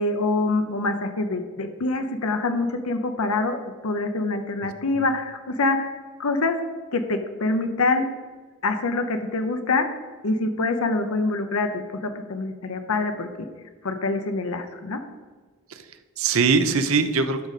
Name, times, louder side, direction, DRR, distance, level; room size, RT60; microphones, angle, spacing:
voice 1, 0.0-3.6 3.8-5.9 6.2-6.6 6.9-8.0 8.6-9.9 10.2-13.5 13.8-15.0, left 3 dB, 75° left, 6 dB, 0.7 m, -25 dB
voice 2, 4.6-5.1 15.7-17.5, right 4 dB, 65° right, 11 dB, 0.7 m, -23 dB
12.5 x 5.1 x 4.1 m, 1.4 s
head